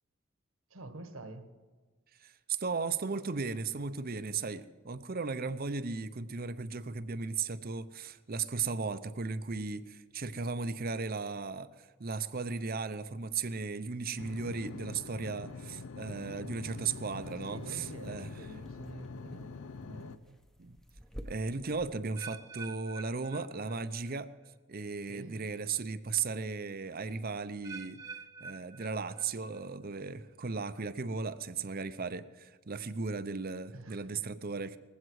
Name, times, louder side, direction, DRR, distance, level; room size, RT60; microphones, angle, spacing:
voice 1, 0.7-1.5 17.1-20.4 25.0-25.5 33.7-34.3, right 2 dB, 70° right, 9 dB, 1.4 m, -49 dB
voice 2, 2.2-18.3 20.6-20.8 21.2-24.3 24.7-28.0 28.4-34.8, right 4 dB, 45° right, 13 dB, 0.7 m, -36 dB
sound 1, 14.2-20.2, left 4 dB, 70° left, 0.6 m, -45 dB
sound 2, 16.9-21.9, equal, ahead, 0.8 m, -52 dB
sound 3, 22.2-24.2 24.4-24.9 25.5-25.6 27.6-29.6 29.9-30.4 31.0-31.1, right 4 dB, 15° right, 1.1 m, -48 dB
19.5 x 15.5 x 4.8 m, 1.4 s
head